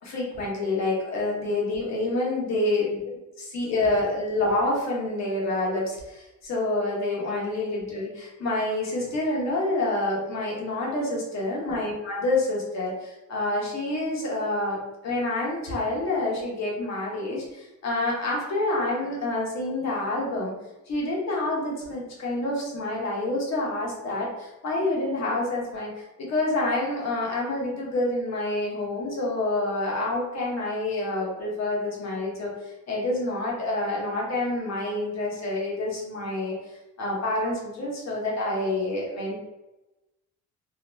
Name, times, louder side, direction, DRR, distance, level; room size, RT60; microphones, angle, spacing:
voice 1, 0.0-3.0 3.4-20.5 20.9-39.3, left 2 dB, 60° left, -4 dB, 1.1 m, -28 dB
2.9 x 2.0 x 3.3 m, 1.0 s
cardioid pair, 90°, 30 cm